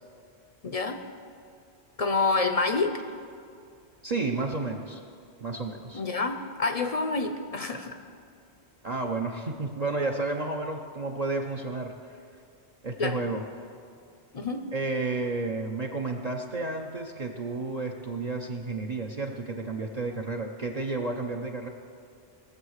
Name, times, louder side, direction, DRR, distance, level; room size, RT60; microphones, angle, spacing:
voice 1, 0.6-1.0 2.0-3.0 5.9-8.0 13.0-13.2 14.3-14.7, left 3 dB, 40° left, 8 dB, 0.6 m, -27 dB
voice 2, 4.0-5.0 5.4-6.0 8.8-12.2 12.8-13.7 14.7-21.7, right 3 dB, 40° right, 3 dB, 0.7 m, -31 dB
19.0 x 7.4 x 6.4 m, 2.4 s
omnidirectional pair, 1.1 m